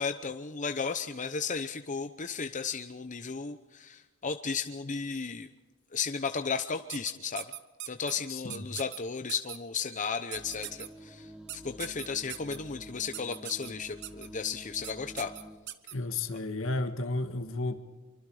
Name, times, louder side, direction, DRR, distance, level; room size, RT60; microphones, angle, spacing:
voice 1, 0.0-5.5 5.9-7.4 7.9-15.3, left 5 dB, 40° left, 8 dB, 0.8 m, -34 dB
sound 1, 6.9-8.1 8.5-9.0 9.3-9.6 10.3-10.9 11.5-12.6 13.1-13.7 14.0-14.3 14.8-14.9 15.2-15.9, right 13 dB, 60° right, 1.2 m, -40 dB
voice 2, 8.3-8.7 15.9-17.8, left 2 dB, 70° left, 7 dB, 2.0 m, -33 dB
sound 2, 10.3-15.6, equal, 5° right, 1.9 m, -49 dB
26.0 x 24.5 x 5.0 m, 1.2 s
head